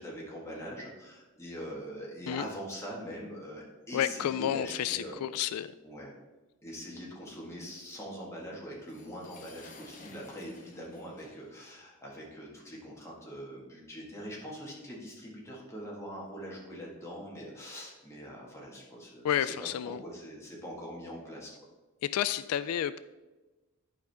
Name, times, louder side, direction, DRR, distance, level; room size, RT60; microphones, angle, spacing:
voice 1, 0.0-5.2 5.8-6.1 6.6-19.5 19.8-21.5, equal, 15° left, -4 dB, 1.7 m, -43 dB
voice 2, 3.9-5.7 19.2-20.0 22.0-23.0, left 10 dB, 90° left, 14 dB, 0.3 m, -30 dB
sound 1, 8.8-11.7, left 3 dB, 35° left, 0.9 m, -54 dB
11.0 x 5.0 x 3.5 m, 1.2 s
head